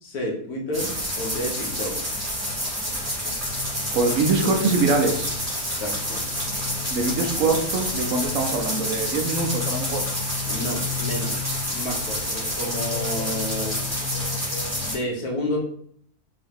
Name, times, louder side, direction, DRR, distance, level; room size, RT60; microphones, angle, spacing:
voice 1, 0.0-1.9 5.6-6.2 10.5-13.8 14.8-15.6, left 1 dB, 80° left, 0 dB, 1.4 m, -30 dB
sound 1, 0.7-14.9, left 1 dB, 15° right, 0.8 m, -28 dB
voice 2, 3.9-5.3 6.9-10.0, right 3 dB, 65° right, 4 dB, 1.0 m, -23 dB
3.8 x 2.8 x 3.5 m, 0.63 s
omnidirectional pair, 1.6 m